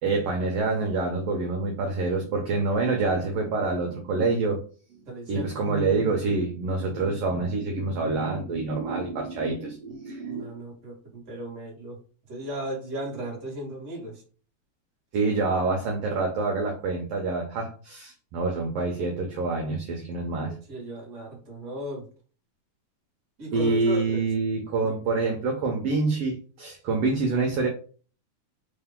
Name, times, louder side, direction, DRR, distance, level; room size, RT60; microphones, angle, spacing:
voice 1, 0.0-4.6 5.3-10.5 15.1-20.6 23.5-27.7, right 3 dB, 70° right, 1 dB, 1.6 m, -26 dB
voice 2, 5.0-5.5 10.3-12.0 12.3-14.2 20.4-22.1 23.4-24.2 24.8-25.0, right 1 dB, 30° right, -2 dB, 1.7 m, -36 dB
4.5 x 2.8 x 3.6 m, 0.39 s
omnidirectional pair, 3.4 m